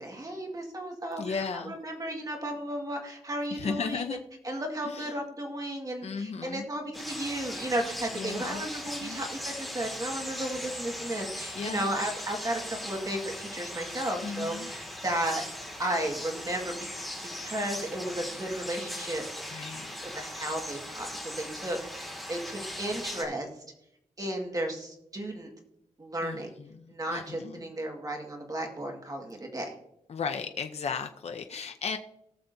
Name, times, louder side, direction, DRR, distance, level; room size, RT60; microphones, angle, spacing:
voice 1, 0.0-4.2 4.4-15.4 15.8-16.7 17.4-19.2 20.1-21.1 21.4-23.5 24.2-25.5 26.0-26.5 26.9-29.7, right 1 dB, 30° right, 1 dB, 1.8 m, -34 dB
voice 2, 1.2-1.8 3.5-4.2 4.9-5.0 6.0-6.7 8.2-8.6 9.0-9.2 11.6-11.9 14.2-14.7 19.5-20.0 26.2-26.4 27.1-27.6 30.1-32.0, left 5 dB, 60° left, 6 dB, 0.6 m, -35 dB
sound 1, 6.9-23.2, equal, ahead, 2.2 m, -39 dB
18.5 x 7.0 x 2.7 m, 0.79 s
wide cardioid pair, 140°, 13 cm